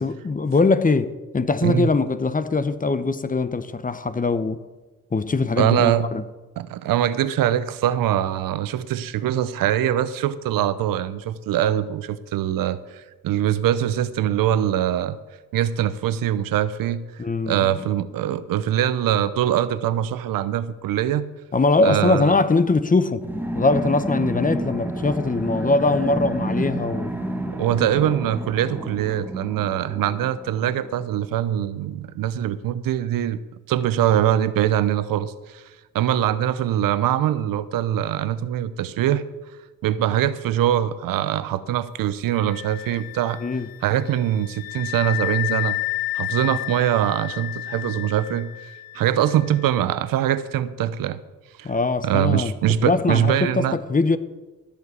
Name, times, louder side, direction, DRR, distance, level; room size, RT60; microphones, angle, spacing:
voice 1, 0.0-4.6 5.1-6.2 17.2-17.7 21.5-23.2 23.5-27.1 43.4-43.7 51.6-52.5 52.8-54.2, left 3 dB, 25° left, 0.9 m, -22 dB
voice 2, 5.6-6.1 6.6-15.2 15.5-17.0 17.5-21.3 21.8-22.3 27.5-33.4 33.7-35.6 35.9-39.2 39.8-43.4 43.8-45.8 46.1-48.5 48.9-51.2 51.6-51.7 52.0-53.8, right 11 dB, 75° right, 0.8 m, -23 dB
sound 1, 23.2-31.4, right 1 dB, 5° right, 1.5 m, -30 dB
Wind instrument woodwind instrument, 42.3-49.7, left 18 dB, 90° left, 0.7 m, -31 dB
15.5 x 5.3 x 8.2 m
supercardioid pair, 65°, 34 cm